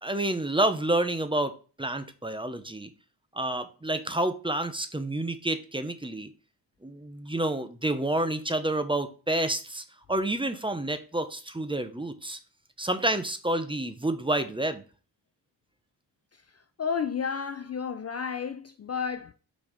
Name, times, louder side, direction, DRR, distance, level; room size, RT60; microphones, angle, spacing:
voice 1, 0.0-2.9 3.3-6.3 6.8-12.4 12.8-14.8, right 1 dB, 10° right, 0.9 m, -29 dB
voice 2, 16.8-19.3, left 6 dB, 35° left, 0.5 m, -31 dB
5.9 x 4.3 x 5.1 m
cardioid pair, 85°, 45 cm